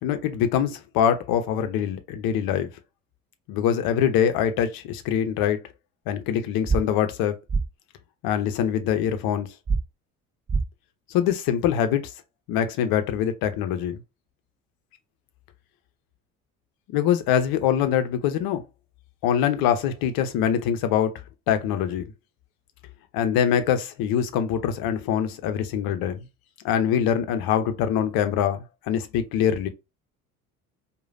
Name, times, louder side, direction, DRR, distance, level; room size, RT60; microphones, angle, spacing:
voice 1, 0.0-2.7 3.5-5.6 6.1-7.3 8.2-9.5 11.1-12.1 12.5-14.0 16.9-18.7 19.2-21.2 21.5-22.0 23.1-26.2 26.6-29.7, left 9 dB, 55° left, 0.9 m, -24 dB
sound 1, 6.7-6.8 7.5-7.6 9.7-9.8 10.5-10.6, right 4 dB, 20° right, 0.8 m, -22 dB
4.8 x 2.5 x 2.6 m
figure-of-eight pair, 60°, 43 cm